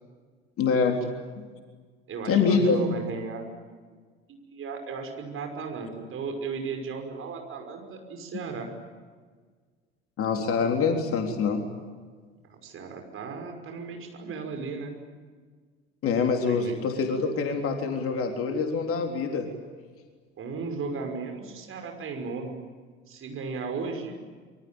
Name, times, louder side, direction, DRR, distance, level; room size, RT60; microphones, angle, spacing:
voice 1, 0.6-1.0 2.3-3.0 10.2-11.6 16.0-19.5, left 5 dB, 45° left, 3 dB, 3.7 m, -25 dB
voice 2, 2.1-3.5 4.3-8.7 12.4-14.9 16.5-16.8 20.4-22.5 23.1-24.1, right 4 dB, 40° right, 5 dB, 5.8 m, -35 dB
26.5 x 24.5 x 9.1 m, 1.5 s
figure-of-eight pair, 65°, 33 cm